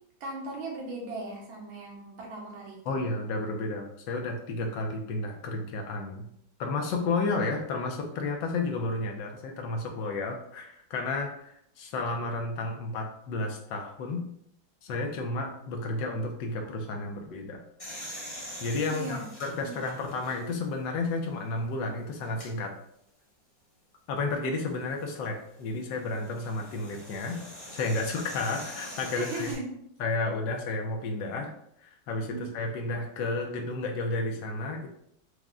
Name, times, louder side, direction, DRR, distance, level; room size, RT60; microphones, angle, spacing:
voice 1, 0.2-3.0 18.9-19.2 19.6-19.7 29.1-29.7 32.3-32.4, right 2 dB, 90° right, -1 dB, 1.8 m, -37 dB
voice 2, 2.9-6.3 6.6-14.2 14.8-17.6 18.6-22.7 24.1-27.4 27.7-29.5 30.0-31.5 31.8-34.9, left 3 dB, 75° left, 2 dB, 1.2 m, -32 dB
sound 1, 17.8-20.7 21.3-21.4 22.2-22.5 24.7-29.5, equal, 25° left, 0.9 m, -44 dB
4.7 x 2.1 x 3.6 m, 0.73 s
omnidirectional pair, 2.2 m